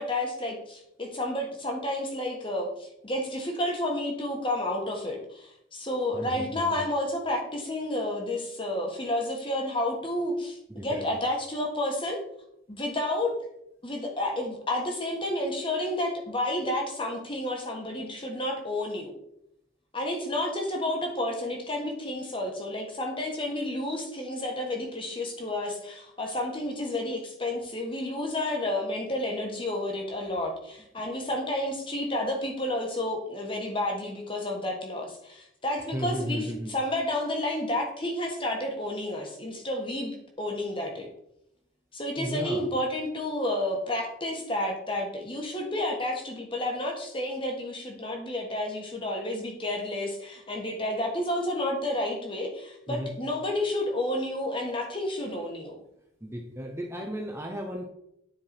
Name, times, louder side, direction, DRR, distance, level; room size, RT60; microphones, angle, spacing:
voice 1, 0.0-12.2 12.7-13.4 13.8-19.1 19.9-41.1 41.9-55.8, left 1 dB, 25° left, 1 dB, 1.5 m, -31 dB
voice 2, 6.1-6.8 10.7-11.1 35.9-36.7 42.2-42.7 52.9-53.2 56.2-57.8, equal, 10° right, 2 dB, 0.7 m, -34 dB
9.9 x 4.7 x 4.4 m, 0.77 s
head